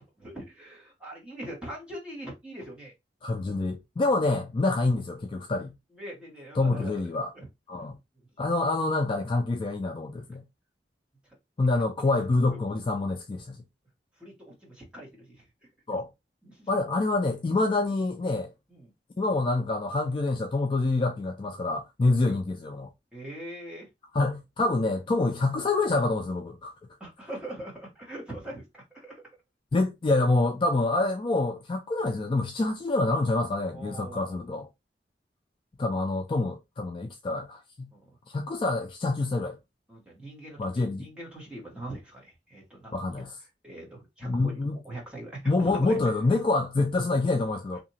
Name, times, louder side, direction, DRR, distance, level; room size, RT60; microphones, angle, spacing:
voice 1, 0.2-2.9 5.9-7.5 14.2-15.4 16.4-16.7 18.7-18.9 22.2-22.4 23.1-23.9 27.0-29.2 33.7-34.4 37.9-38.2 39.9-40.7 41.0-43.2 43.6-46.0 47.7-47.8, right 1 dB, 5° right, 1.1 m, -42 dB
voice 2, 3.2-5.7 6.6-7.3 7.7-8.0 8.4-10.4 11.6-13.6 15.9-16.1 16.7-18.5 19.2-22.9 24.1-26.7 29.7-34.7 35.8-37.9 38.3-39.6 40.6-41.1 42.9-43.4 44.2-44.8 45.4-47.8, left 2 dB, 30° left, 0.3 m, -26 dB
2.8 x 2.5 x 2.7 m
head